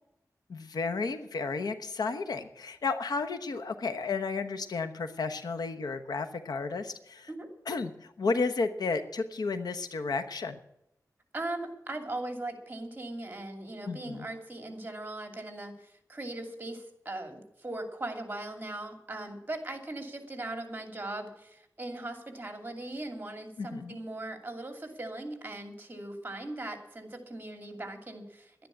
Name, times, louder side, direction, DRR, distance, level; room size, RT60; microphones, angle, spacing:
voice 1, 0.5-7.3 7.7-10.6 13.8-14.3 23.6-24.0, left 4 dB, 90° left, 8 dB, 1.0 m, -32 dB
voice 2, 11.3-28.7, right 2 dB, 30° right, 5 dB, 2.6 m, -39 dB
11.5 x 10.5 x 8.4 m, 0.82 s
wide cardioid pair, 85°, 7 cm